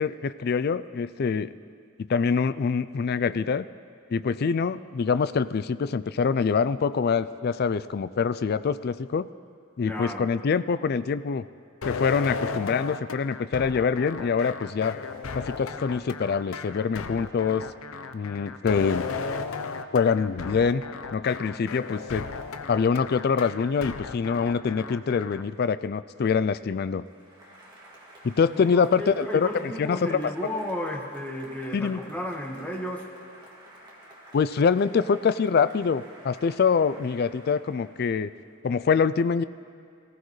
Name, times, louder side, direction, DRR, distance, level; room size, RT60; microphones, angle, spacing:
voice 1, 0.0-1.5 2.1-3.7 4.1-9.3 9.8-11.4 11.8-15.0 15.3-17.7 18.1-19.1 19.9-20.8 21.1-22.2 22.7-27.1 28.2-30.2 31.7-32.0 34.3-38.3 38.6-39.4, left 5 dB, 50° left, 14 dB, 0.3 m, -25 dB
voice 2, 9.8-10.3 28.5-28.7 29.0-33.1, equal, 10° left, -1 dB, 1.4 m, -33 dB
sound 1, 11.8-25.4, left 5 dB, 80° left, 0.7 m, -35 dB
Applause, 27.0-38.5, right 1 dB, 20° right, 2.3 m, -51 dB
21.5 x 15.5 x 3.2 m, 2.4 s
head